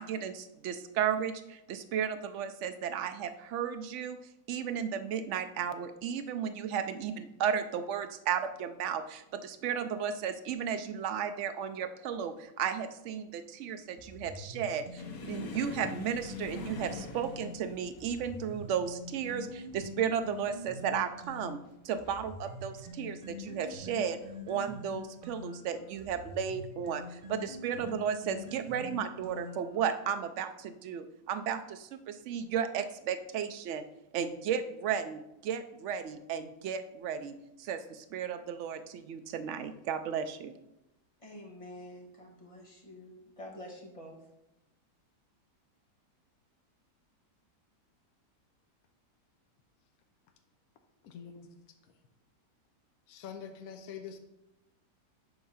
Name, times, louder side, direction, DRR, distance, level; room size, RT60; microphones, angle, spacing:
voice 1, 0.0-4.2 4.5-21.6 21.8-24.2 24.5-33.8 34.1-40.5, right 8 dB, 85° right, 9 dB, 0.6 m, -34 dB
sound 1, 14.0-17.5 18.0-21.5 22.0-29.8, left 2 dB, 35° right, 1.2 m, -45 dB
sound 2, 15.0-22.2 22.5-22.9 23.2-23.4 24.2-24.8 25.7-25.9 27.3-27.5, left 4 dB, 90° left, 1.6 m, -47 dB
voice 2, 41.2-44.2, left 1 dB, 20° left, -1 dB, 1.3 m, -48 dB
voice 3, 51.0-51.5 53.1-54.2, left 7 dB, 65° left, 5 dB, 1.0 m, -44 dB
7.8 x 3.6 x 5.6 m, 0.89 s
omnidirectional pair, 1.8 m